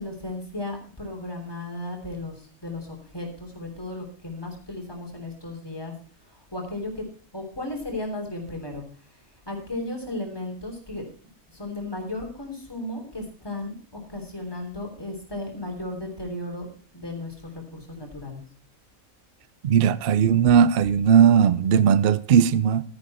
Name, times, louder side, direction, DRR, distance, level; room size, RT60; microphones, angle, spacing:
voice 1, 0.0-5.9 6.3-7.0 7.3-8.8 9.4-11.0 11.5-13.7 14.1-18.4, left 2 dB, 15° left, 3.5 m, -35 dB
voice 2, 19.6-22.8, right 8 dB, 55° right, 0.7 m, -18 dB
13.5 x 10.0 x 4.3 m
omnidirectional pair, 1.5 m